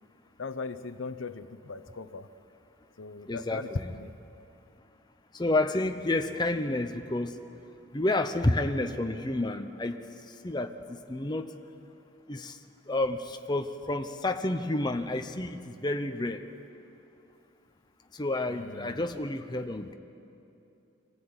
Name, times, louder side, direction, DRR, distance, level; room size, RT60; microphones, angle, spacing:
voice 1, 0.4-2.3 3.0-4.1 18.5-19.1, left 3 dB, 80° left, 12 dB, 0.7 m, -38 dB
voice 2, 3.3-3.9 5.3-7.4 7.9-11.6 12.3-12.6 12.9-16.4 18.1-19.9, left 2 dB, 20° left, 6 dB, 0.7 m, -30 dB
24.5 x 15.0 x 8.8 m, 2.8 s
head